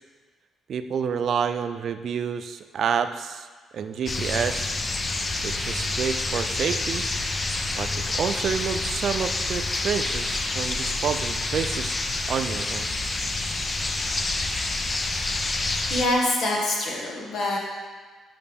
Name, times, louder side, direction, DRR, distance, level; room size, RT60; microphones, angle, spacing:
voice 1, 0.7-3.5 3.7-4.7 5.4-7.1 7.7-11.9 12.3-12.9, right 7 dB, 60° right, 10 dB, 0.4 m, -29 dB
sound 1, 4.1-16.1, left 2 dB, 30° left, 0.6 m, -28 dB
voice 2, 15.6-17.6, left 1 dB, 70° left, -2 dB, 1.6 m, -25 dB
8.7 x 5.6 x 3.5 m, 1.4 s
cardioid pair, 90°, 0 cm